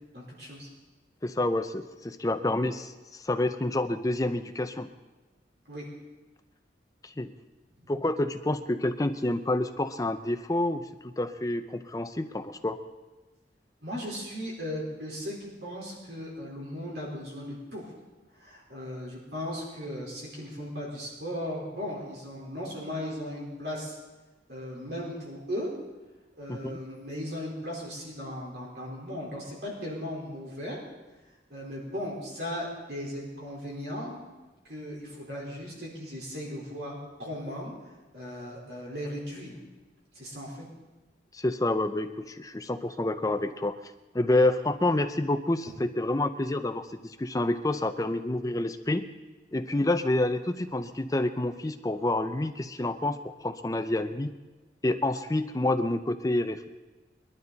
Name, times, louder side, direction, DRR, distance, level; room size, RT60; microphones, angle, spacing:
voice 1, 0.1-0.7 5.7-5.8 13.8-17.9 18.3-24.0 24.5-25.7 26.4-30.8 31.5-34.2 34.6-37.7 38.1-39.6 40.1-40.6, equal, 65° right, -4 dB, 4.1 m, -37 dB
voice 2, 1.2-4.9 7.0-7.3 7.9-12.8 26.5-26.8 41.3-43.8 44.1-49.1 49.5-54.3 54.8-56.7, left 2 dB, 20° left, 9 dB, 0.6 m, -28 dB
22.0 x 12.0 x 4.1 m, 1.2 s
head